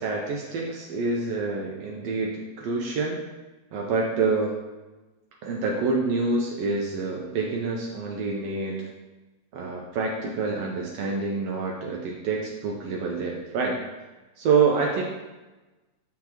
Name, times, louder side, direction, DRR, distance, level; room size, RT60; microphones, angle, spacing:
voice 1, 0.0-3.2 3.7-4.6 5.4-8.9 9.5-13.8 14.4-15.0, right 4 dB, 70° right, -1 dB, 1.6 m, -27 dB
9.4 x 4.0 x 2.9 m, 1.1 s
omnidirectional pair, 3.3 m